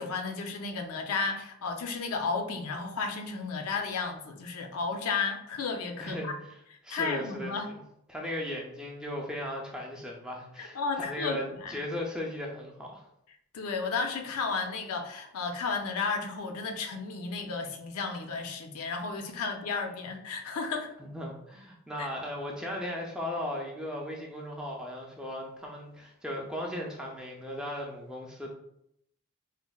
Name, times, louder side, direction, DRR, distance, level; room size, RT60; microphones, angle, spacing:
voice 1, 0.0-6.3 6.9-7.7 10.6-11.8 13.5-20.9 22.0-22.1, left 4 dB, 85° left, 5 dB, 0.4 m, -33 dB
voice 2, 6.0-6.6 6.8-7.7 8.1-13.0 21.0-28.5, left 1 dB, 5° right, -1 dB, 0.3 m, -37 dB
4.0 x 2.0 x 2.2 m, 0.77 s
head